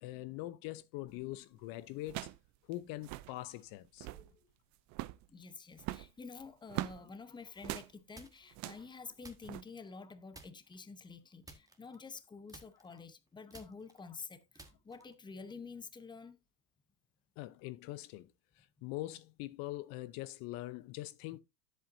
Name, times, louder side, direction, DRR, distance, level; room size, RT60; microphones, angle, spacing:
voice 1, 0.0-2.3 2.7-4.1 17.4-21.4, left 17 dB, 60° left, 0.7 m, -43 dB
sound 1, 1.1-1.3 2.0-2.5 2.7-2.8 3.0-3.3 3.8-4.3 4.9-5.3 5.8-7.0 7.6-7.9 8.5-8.9 9.4-9.6, right 17 dB, 45° right, 0.5 m, -41 dB
voice 2, 4.1-4.4 5.3-16.4, left 4 dB, 10° left, 0.8 m, -49 dB
sound 2, 8.1-8.6 9.2-10.0 10.3-10.8 11.4-12.2 12.5-15.3, right 2 dB, 10° right, 1.5 m, -56 dB
10.0 x 7.8 x 2.6 m
supercardioid pair, 120°, 39 cm